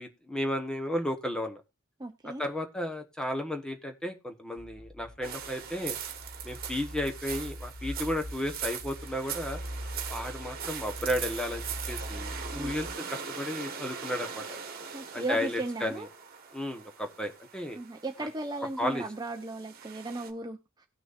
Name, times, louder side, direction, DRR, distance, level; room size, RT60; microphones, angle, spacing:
voice 1, 0.0-1.6 2.2-6.0 6.4-9.6 10.1-14.4 15.1-16.1 16.5-17.8 18.2-18.3 18.8-19.0, left 1 dB, 5° left, 1.2 m, -33 dB
voice 2, 2.0-2.4 12.5-12.7 14.9-16.1 17.7-20.9, right 2 dB, 20° right, 0.7 m, -36 dB
sound 1, 4.6-12.9, equal, 90° left, 1.3 m, -42 dB
sound 2, 5.2-20.3, right 7 dB, 45° right, 1.5 m, -41 dB
18.5 x 6.1 x 2.6 m
head